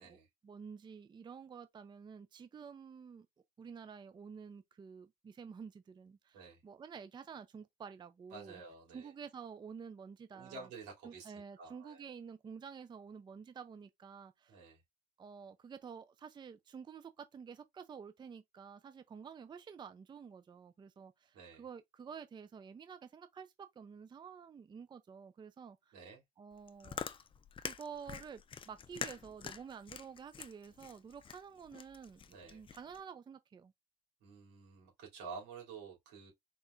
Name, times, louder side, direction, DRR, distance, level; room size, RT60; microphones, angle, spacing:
voice 1, 0.4-3.3 3.6-8.6 8.9-10.7 11.0-14.6 15.2-26.0 26.4-27.1 27.6-33.7, right 6 dB, 25° right, 0.5 m, -50 dB
voice 2, 8.3-9.1 10.3-12.0 14.5-14.8 21.3-21.6 25.9-26.2 32.3-32.6 34.2-36.3, right 4 dB, 90° right, 3.0 m, -50 dB
Chewing mastication, 26.5-33.0, left 7 dB, 30° left, 0.5 m, -46 dB
4.4 x 4.1 x 2.5 m
cardioid pair, 110°, 17 cm